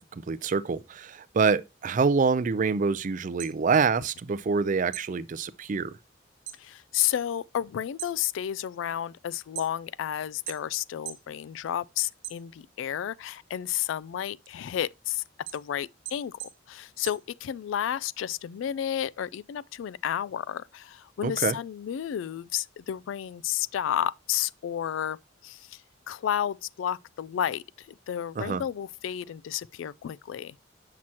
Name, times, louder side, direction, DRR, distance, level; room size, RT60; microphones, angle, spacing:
voice 1, 0.0-5.9 21.2-21.6 28.4-28.6, right 5 dB, 40° right, 0.4 m, -26 dB
sound 1, 3.4-4.6 4.9-6.7 7.0-7.5 7.8-10.0 10.5-11.3 11.7-12.9 13.3-17.9, right 13 dB, 70° right, 1.0 m, -43 dB
voice 2, 6.6-15.2 15.5-16.4 16.7-25.2 25.4-25.8 26.1-27.6 28.1-30.5, left 10 dB, 80° left, 0.3 m, -31 dB
7.5 x 5.8 x 2.9 m
head